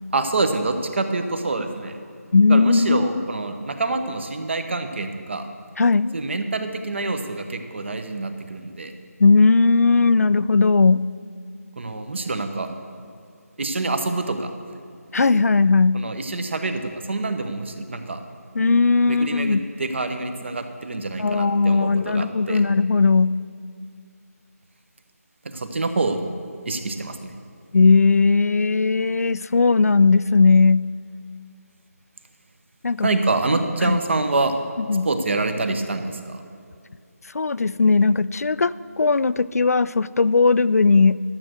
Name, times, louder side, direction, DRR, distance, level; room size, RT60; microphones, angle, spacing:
voice 1, 0.1-2.0 2.5-5.5 6.1-8.9 11.8-12.7 13.6-14.5 15.9-18.2 19.1-22.6 25.4-26.2 26.6-27.3 33.0-34.6 35.0-36.4, right 3 dB, 45° right, 8 dB, 1.0 m, -26 dB
voice 2, 2.3-3.3 5.8-6.1 9.2-11.0 15.1-16.0 18.5-19.7 21.2-23.4 27.7-30.9 32.8-33.1 33.8-34.0 34.8-35.1 37.3-41.2, left 4 dB, 70° left, 17 dB, 0.3 m, -18 dB
12.0 x 7.7 x 6.3 m, 2.4 s
figure-of-eight pair, 165°, 9 cm